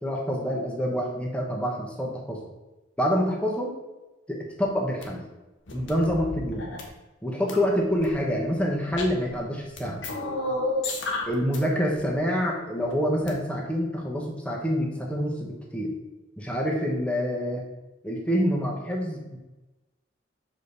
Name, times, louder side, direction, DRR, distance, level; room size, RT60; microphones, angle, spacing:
voice 1, 0.0-2.4 3.0-3.8 4.3-5.2 5.7-6.7 7.2-10.0 11.3-15.9 16.4-17.6 18.0-19.4, equal, 5° left, -2 dB, 1.1 m, -27 dB
sound 1, 5.0-5.1 5.7-6.9 7.5-8.1 8.8-9.4 9.8-11.6 11.8-12.0 13.1-13.3, left 2 dB, 90° left, 1.3 m, -31 dB
6.4 x 5.1 x 4.1 m, 1.1 s
head